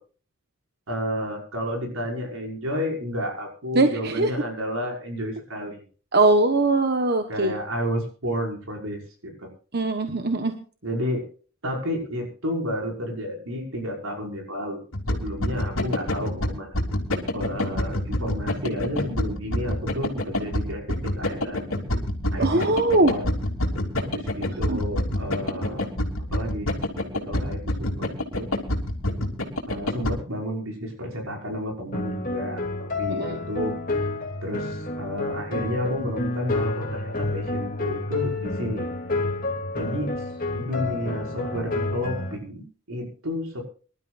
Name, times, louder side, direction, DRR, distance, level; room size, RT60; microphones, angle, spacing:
voice 1, 0.9-5.8 7.3-9.5 10.8-11.2 11.6-14.8 15.1-16.7 17.3-21.6 22.3-23.3 24.0-25.9 26.3-26.7 27.1-28.5 29.7-33.8 34.4-38.9 39.7-40.2 40.5-43.6, equal, 85° right, 0 dB, 5.9 m, -31 dB
voice 2, 3.7-4.3 6.1-7.5 9.7-10.5 22.4-23.1 24.7-24.8 33.1-33.4, right 2 dB, 50° right, 6 dB, 1.2 m, -21 dB
sound 1, 14.9-30.1, left 1 dB, 80° left, 2.9 m, -26 dB
sound 2, 31.9-42.4, left 2 dB, 40° left, 2.7 m, -29 dB
25.0 x 12.5 x 2.5 m, 0.39 s
head